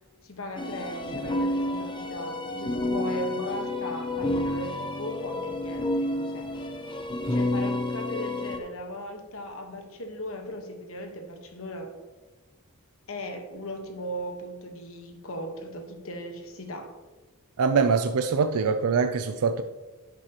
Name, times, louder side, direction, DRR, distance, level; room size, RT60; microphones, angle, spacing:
voice 1, 0.2-6.6 7.3-12.0 13.1-17.0, equal, 65° left, 1.2 m, -38 dB
sound 1, 0.6-8.6, left 1 dB, 20° left, 0.6 m, -30 dB
voice 2, 17.6-19.6, right 5 dB, 80° right, 0.4 m, -24 dB
10.5 x 7.6 x 2.9 m
head